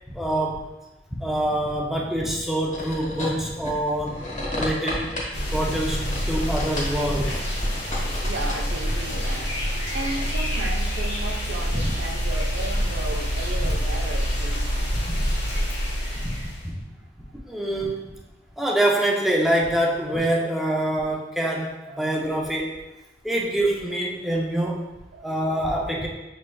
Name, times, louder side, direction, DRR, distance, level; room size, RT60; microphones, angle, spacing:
voice 1, 0.1-0.7 1.2-4.2 4.5-5.1 5.5-7.4 11.7-11.9 14.9-15.2 16.2-16.4 17.5-18.0 18.6-22.8 23.2-26.1, right 1 dB, ahead, -3 dB, 0.5 m, -25 dB
sound 1, 2.7-9.7, left 1 dB, 45° left, 1.2 m, -33 dB
sound 2, 5.3-16.7, equal, 65° left, 1.5 m, -26 dB
voice 2, 8.2-14.6 15.5-15.6 21.8-22.0 25.1-25.3, right 2 dB, 80° right, 1 dB, 0.6 m, -35 dB
6.5 x 3.1 x 2.2 m, 1.0 s
head